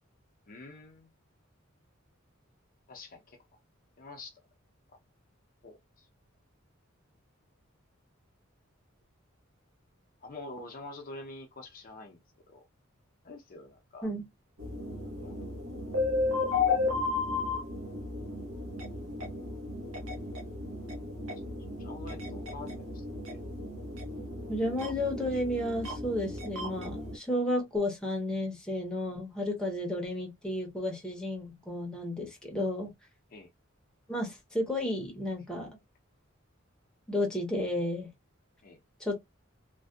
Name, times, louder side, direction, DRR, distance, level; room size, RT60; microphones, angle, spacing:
voice 1, 0.5-1.1 2.9-3.4 4.0-4.4 5.6-6.1 10.2-12.2 12.5-12.7 13.2-14.1 15.2-15.8 16.9-17.0 21.4-21.5 21.8-23.4 33.3-33.5 38.6-38.8, left 2 dB, 45° left, 0.5 m, -47 dB
sound 1, 14.6-27.2, left 3 dB, 75° right, 0.8 m, -34 dB
voice 2, 24.5-32.9 34.1-35.7 37.1-38.1 39.0-39.2, left 1 dB, 5° left, 0.7 m, -32 dB
2.5 x 2.2 x 2.3 m
head